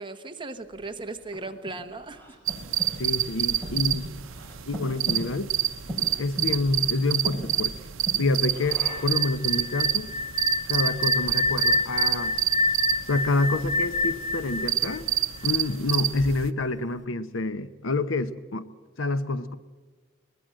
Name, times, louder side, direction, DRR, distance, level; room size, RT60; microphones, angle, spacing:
voice 1, 0.0-2.4, right 3 dB, 25° right, 6 dB, 1.2 m, -37 dB
Breathing, 0.7-9.2, equal, 10° left, 5.4 m, -39 dB
sound 1, 2.5-16.5, right 10 dB, 75° right, 0.8 m, -28 dB
voice 2, 3.0-4.0 4.7-5.5 6.2-7.7 8.2-10.1 10.7-12.4 13.1-15.1 15.4-18.7 19.0-19.6, left 2 dB, 70° left, 13 dB, 0.9 m, -27 dB
sound 2, 8.8-15.7, left 3 dB, 40° left, 0.7 m, -28 dB
22.0 x 20.0 x 7.7 m, 1.3 s
head